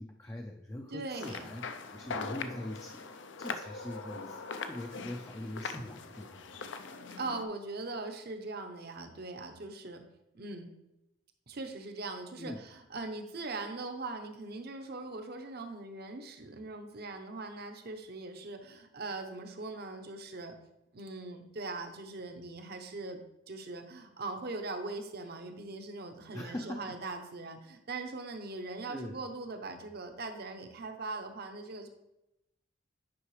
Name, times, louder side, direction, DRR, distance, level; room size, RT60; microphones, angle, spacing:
voice 1, 0.0-3.0 3.4-6.7 12.3-12.7 26.3-27.0 28.9-29.2, left 1 dB, 15° left, 2 dB, 0.4 m, -42 dB
voice 2, 0.9-1.4 7.2-10.0 10.3-10.8 11.5-20.5 20.9-23.2 23.5-31.9, right 3 dB, 55° right, 6 dB, 0.8 m, -41 dB
sound 1, 1.1-7.4, left 4 dB, 70° left, 0.5 m, -41 dB
9.5 x 5.6 x 3.2 m, 0.90 s
head